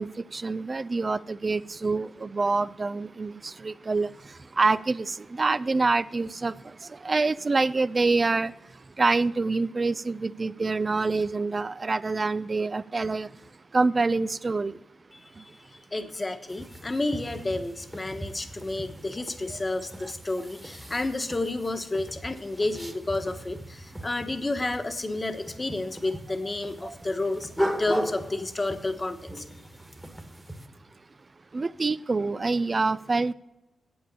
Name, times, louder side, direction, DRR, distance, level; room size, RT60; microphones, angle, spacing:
voice 1, 0.0-4.1 4.6-6.5 7.0-8.5 9.0-13.3 13.7-14.7 19.5-19.6 26.8-26.9 31.5-33.3, right 3 dB, 35° right, 17 dB, 0.3 m, -26 dB
voice 2, 15.1-15.5 15.9-29.4, left 2 dB, 25° left, 7 dB, 1.2 m, -31 dB
sound 1, 16.5-30.7, equal, 5° right, 1.4 m, -37 dB
8.6 x 8.5 x 6.7 m, 0.98 s
cardioid pair, 70°, 0 cm